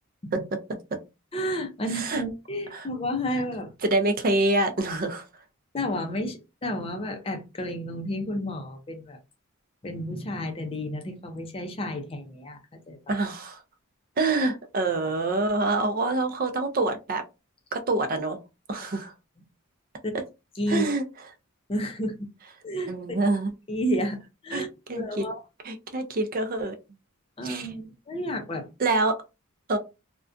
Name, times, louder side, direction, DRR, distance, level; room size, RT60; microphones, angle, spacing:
voice 1, 1.3-3.7 5.7-9.2 9.8-12.6 12.9-13.1 20.0-20.1 20.6-20.9 21.7-22.1 22.6-23.2 23.7-24.2 24.4-24.7 24.9-25.4 27.4-28.7, equal, 25° left, 0.4 m, -31 dB
voice 2, 1.9-2.2 2.7-2.9 3.8-5.2 13.1-13.6 14.2-17.2 17.7-18.4 18.7-19.1 20.7-21.0 22.9-23.5 24.5-24.6 24.9-25.2 25.6-26.8 27.4-27.7 28.8-29.2 29.7-29.8, right 2 dB, 40° right, 0.4 m, -26 dB
2.4 x 2.2 x 2.4 m
head